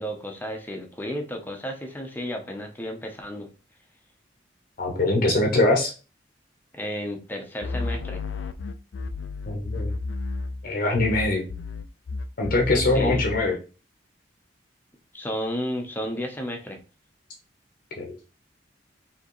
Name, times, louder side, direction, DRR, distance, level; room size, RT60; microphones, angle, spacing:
voice 1, 0.0-3.5 6.7-8.2 12.7-13.2 15.1-16.8, equal, 10° left, 3 dB, 0.8 m, -32 dB
voice 2, 4.8-5.9 9.5-9.9 10.6-11.4 12.4-13.6 18.0-18.2, left 2 dB, 50° left, 1 dB, 0.8 m, -22 dB
sound 1, 7.6-10.7 11.0-13.5, left 3 dB, 85° left, 0.4 m, -31 dB
4.7 x 2.9 x 3.1 m, 0.33 s
head